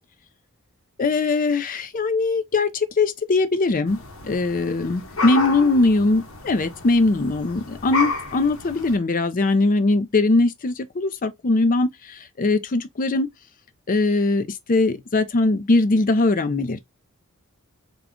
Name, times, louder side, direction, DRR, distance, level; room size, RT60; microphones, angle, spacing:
voice 1, 1.0-13.3 13.9-16.8, left 3 dB, 40° left, 0.5 m, -21 dB
sound 1, 3.9-9.0, left 3 dB, 65° left, 0.9 m, -31 dB
3.6 x 2.3 x 3.6 m
head